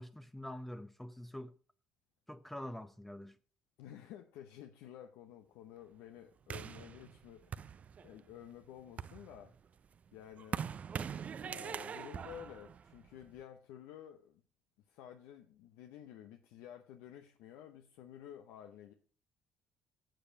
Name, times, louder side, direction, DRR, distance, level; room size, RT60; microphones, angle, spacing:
voice 1, 0.0-1.5 2.3-3.4, left 1 dB, 5° left, 0.6 m, -45 dB
voice 2, 3.8-9.5 10.1-10.7 11.4-14.4 14.9-18.9, left 10 dB, 85° left, 0.8 m, -52 dB
sound 1, 6.5-8.3 8.8-13.4, right 7 dB, 40° right, 0.4 m, -43 dB
7.7 x 6.9 x 5.2 m
cardioid pair, 90°, 4 cm